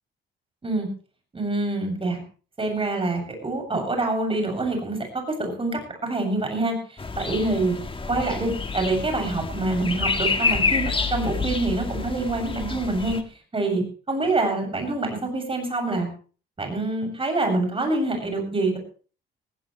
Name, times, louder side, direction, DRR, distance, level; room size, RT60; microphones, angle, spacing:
voice 1, 1.3-2.2 2.6-5.0 5.3-7.7 8.1-13.2 13.5-16.1 16.6-18.8, right 2 dB, 25° right, 3 dB, 7.7 m, -26 dB
sound 1, 7.0-13.2, left 4 dB, 25° left, 2.0 m, -28 dB
20.0 x 16.5 x 3.3 m, 0.39 s
cardioid pair, 90°, 20 cm